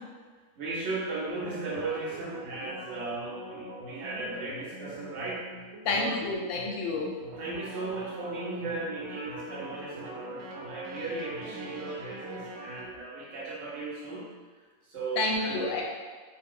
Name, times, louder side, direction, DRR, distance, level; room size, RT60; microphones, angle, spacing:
voice 1, 0.6-5.5 5.9-6.2 7.3-14.3 14.9-15.6, right 3 dB, 55° right, -6 dB, 1.0 m, -36 dB
sound 1, 1.3-12.9, right 1 dB, 90° right, 1.1 m, -43 dB
voice 2, 5.8-7.1 15.2-15.8, left 3 dB, 70° left, -1 dB, 0.9 m, -29 dB
2.6 x 2.2 x 3.4 m, 1.4 s
omnidirectional pair, 1.4 m